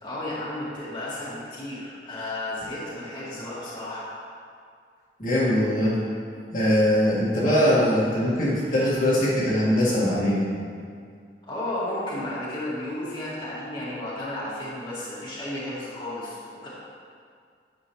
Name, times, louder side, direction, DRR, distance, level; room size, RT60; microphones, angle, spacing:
voice 1, 0.0-4.1 11.4-16.7, left 1 dB, 25° left, -9 dB, 2.1 m, -33 dB
voice 2, 5.2-6.0 6.5-10.4, equal, 50° left, -9 dB, 1.8 m, -21 dB
10.0 x 7.2 x 3.1 m, 2.2 s
head